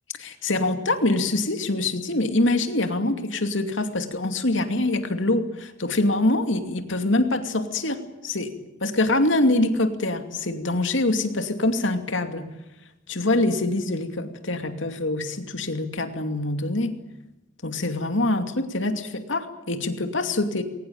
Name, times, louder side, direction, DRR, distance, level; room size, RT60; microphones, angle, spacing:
voice 1, 0.2-8.5 8.8-12.5 13.1-16.9 17.6-20.6, left 2 dB, 80° left, 7 dB, 2.6 m, -24 dB
22.5 x 19.0 x 8.8 m, 0.96 s
head